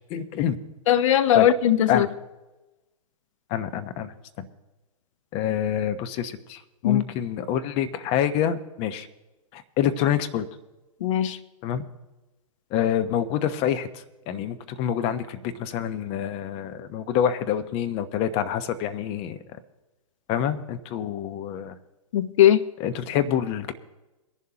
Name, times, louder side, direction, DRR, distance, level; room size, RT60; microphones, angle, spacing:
voice 1, 0.1-0.6 1.3-1.5 1.9-2.1 3.5-4.1 5.3-9.1 9.5-10.4 11.6-11.8 12.7-19.4 20.3-21.7 22.8-23.7, left 9 dB, 30° left, 10 dB, 1.0 m, -27 dB
voice 2, 0.9-2.1 6.8-7.0 11.0-11.4 22.1-22.6, left 11 dB, 55° left, 12 dB, 0.9 m, -19 dB
23.0 x 11.0 x 2.9 m, 1.1 s
hypercardioid pair, 130°, 19 cm